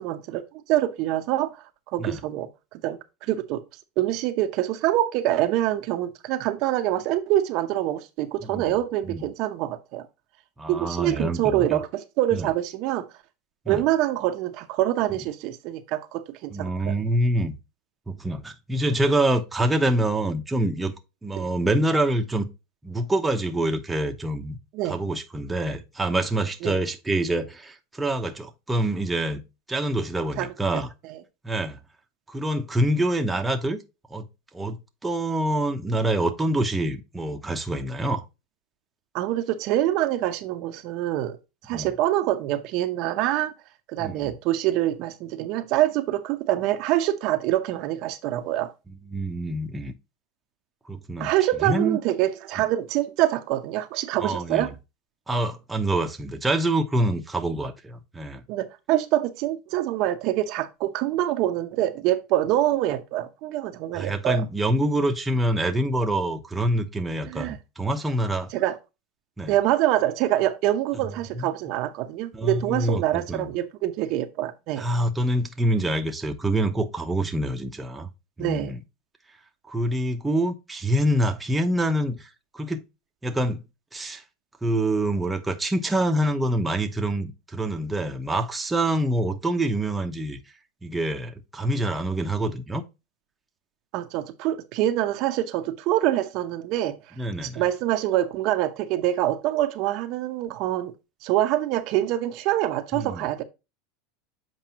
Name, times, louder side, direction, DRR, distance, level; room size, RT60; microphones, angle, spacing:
voice 1, 0.0-1.6 1.9-2.5 2.8-3.6 4.0-10.1 10.7-13.1 13.7-16.9 21.4-21.5 24.7-25.0 26.6-26.7 30.4-30.8 31.1-31.2 39.1-41.4 41.6-43.5 43.9-48.7 51.2-54.7 58.5-64.4 67.3-67.6 68.5-68.8 69.5-74.9 78.4-78.7 93.9-97.0 97.4-100.9 101.2-103.4, right 13 dB, 50° right, 0.8 m, -25 dB
voice 2, 8.4-8.8 9.0-9.2 10.6-11.8 12.3-12.5 13.7-13.8 16.5-17.5 18.1-20.9 21.2-22.4 22.8-24.6 24.8-29.4 29.7-30.9 31.4-31.8 32.3-33.8 34.1-34.3 34.5-38.2 41.7-41.9 44.0-44.3 49.1-49.9 50.9-51.3 51.6-52.0 54.2-54.7 55.3-58.4 63.9-68.5 69.4-69.5 71.4-71.5 72.3-73.5 74.8-78.1 78.4-78.8 79.7-82.3 82.5-82.8 83.2-83.6 83.9-84.2 84.6-90.4 90.8-92.8 97.2-97.6 102.9-103.2, right 1 dB, 10° right, 0.9 m, -26 dB
7.7 x 4.9 x 2.9 m
supercardioid pair, 135°, 0 cm